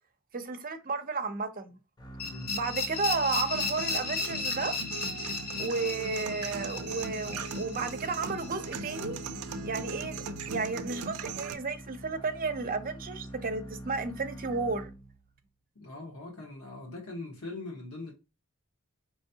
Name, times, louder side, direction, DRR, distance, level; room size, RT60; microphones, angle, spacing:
voice 1, 0.3-1.8 2.5-4.8 5.6-9.2 9.6-14.9, right 4 dB, 40° right, 0.6 m, -33 dB
sound 1, 2.0-15.4, right 1 dB, 20° left, 0.6 m, -45 dB
voice 2, 2.2-2.6 15.8-18.1, left 2 dB, 80° left, 1.3 m, -41 dB
sound 2, 2.2-9.0, left 4 dB, 45° left, 0.9 m, -35 dB
sound 3, 3.5-11.5, right 4 dB, 80° right, 0.5 m, -40 dB
4.6 x 3.1 x 2.7 m
head